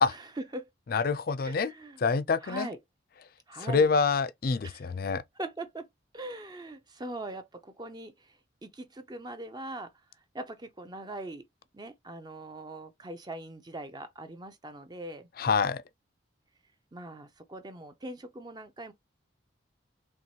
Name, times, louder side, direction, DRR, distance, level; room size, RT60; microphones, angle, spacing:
voice 1, 0.1-0.7 1.4-2.0 2.4-2.8 3.5-3.9 4.6-4.9 5.4-5.9 6.1-11.4 11.7-15.3 16.9-18.9, right 2 dB, 20° right, 0.5 m, -41 dB
voice 2, 0.9-1.7 2.0-2.7 3.6-5.2 15.4-15.8, left 5 dB, 50° left, 0.4 m, -26 dB
4.4 x 3.0 x 2.8 m
head